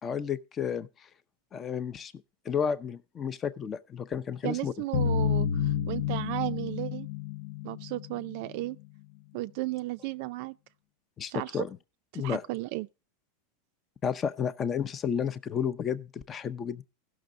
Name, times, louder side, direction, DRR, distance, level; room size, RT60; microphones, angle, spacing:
voice 1, 0.0-0.9 1.5-2.1 2.4-4.7 11.2-11.8 12.1-12.4 14.0-16.8, left 7 dB, 20° left, 0.6 m, -31 dB
voice 2, 4.4-7.1 7.6-8.8 9.3-10.5 11.3-11.7 12.1-12.9, right 18 dB, 55° right, 0.4 m, -34 dB
sound 1, 4.9-8.7, left 8 dB, 70° left, 0.6 m, -30 dB
16.0 x 6.1 x 3.7 m
supercardioid pair, 150°, 0 cm